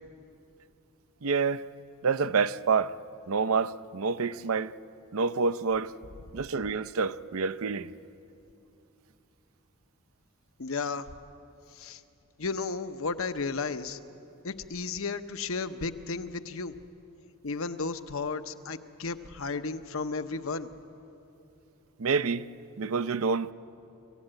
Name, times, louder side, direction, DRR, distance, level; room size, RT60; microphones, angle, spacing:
voice 1, 1.2-1.6 2.0-2.9 3.3-4.7 5.1-5.9 6.3-7.9 22.0-22.5 22.8-23.5, right 5 dB, 75° right, 0.6 m, -27 dB
voice 2, 10.6-11.1 11.7-12.0 12.4-14.0 14.4-16.7 17.4-20.7, left 4 dB, 70° left, 0.8 m, -33 dB
25.0 x 15.5 x 9.0 m
head